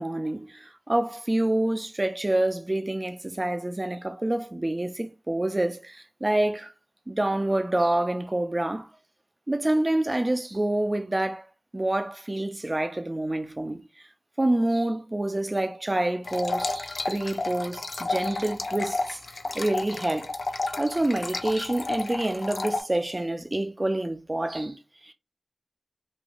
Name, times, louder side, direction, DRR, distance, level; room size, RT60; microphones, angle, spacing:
voice 1, 0.0-6.7 7.1-8.9 9.5-11.5 11.7-14.1 14.4-20.3 20.8-25.1, right 1 dB, 30° right, 0.4 m, -27 dB
sound 1, 16.2-22.8, left 3 dB, 80° left, 0.4 m, -32 dB
3.2 x 2.2 x 2.5 m
wide cardioid pair, 55°, 0 cm